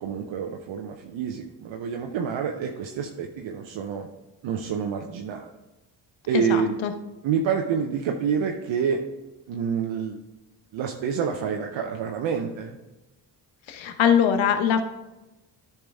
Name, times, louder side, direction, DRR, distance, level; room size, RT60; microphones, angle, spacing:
voice 1, 0.0-4.1 4.4-5.5 6.3-6.8 7.2-9.0 9.5-10.2 10.7-12.8, right 7 dB, 80° right, 2 dB, 0.8 m, -28 dB
voice 2, 6.3-6.9 13.7-14.8, left 8 dB, 80° left, 8 dB, 1.0 m, -22 dB
10.5 x 5.8 x 3.5 m, 1.1 s
supercardioid pair, 50°, 46 cm